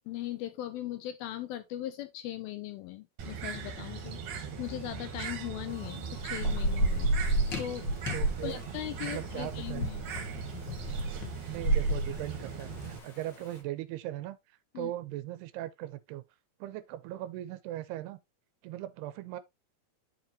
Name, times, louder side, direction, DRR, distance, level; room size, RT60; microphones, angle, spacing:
voice 1, 0.1-7.9 8.4-10.1 14.7-14.9, left 13 dB, 80° left, 2.2 m, -39 dB
Bird, 3.2-13.0, right 6 dB, 60° right, 2.6 m, -40 dB
Thunder / Rain, 5.7-13.3, right 2 dB, 60° left, 1.1 m, -31 dB
voice 2, 8.1-8.6 9.0-9.9 11.5-14.4 14.8-16.2 16.6-18.2 18.6-19.4, right 14 dB, 80° right, 2.7 m, -39 dB
11.0 x 4.6 x 2.8 m
omnidirectional pair, 4.8 m